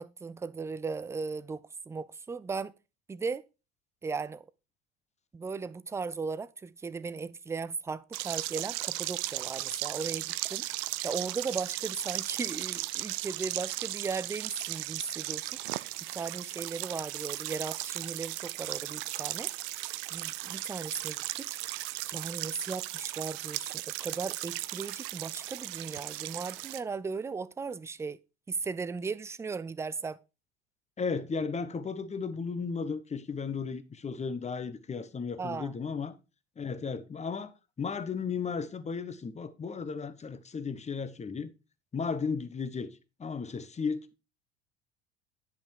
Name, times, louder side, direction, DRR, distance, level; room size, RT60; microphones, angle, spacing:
voice 1, 0.0-2.7 3.1-3.4 4.0-4.5 5.3-10.6 11.0-19.5 20.1-21.5 22.1-28.2 28.5-30.2 35.4-35.8, right 4 dB, 10° right, 0.4 m, -37 dB
sound 1, 8.1-26.8, right 18 dB, 55° right, 0.6 m, -36 dB
voice 2, 31.0-36.1 36.6-37.5 37.8-41.5 41.9-42.9 43.2-44.2, left 5 dB, 20° left, 1.0 m, -34 dB
10.0 x 5.8 x 4.7 m
figure-of-eight pair, 70°, 37 cm